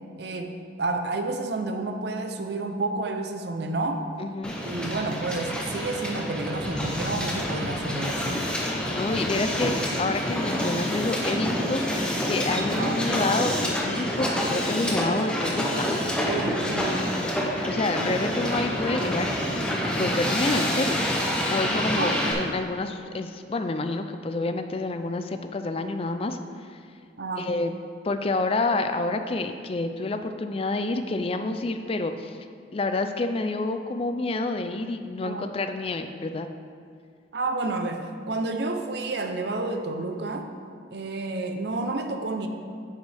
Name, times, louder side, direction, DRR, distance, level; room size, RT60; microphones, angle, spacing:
voice 1, 0.2-4.0 4.6-8.5 12.7-13.0 16.3-16.9 21.8-22.2 27.2-27.5 35.2-35.5 37.3-40.5 40.9-42.5, right 2 dB, 60° right, 5 dB, 0.6 m, -30 dB
voice 2, 4.2-4.5 8.9-16.3 17.2-17.3 17.6-19.7 20.0-21.1 21.5-26.4 26.7-26.8 27.4-27.7 28.0-32.4 32.7-36.5, left 2 dB, 30° left, 8 dB, 0.4 m, -28 dB
Hiss, 4.4-22.3, equal, 5° left, 0.8 m, -27 dB
9.2 x 6.7 x 3.4 m, 2.2 s
head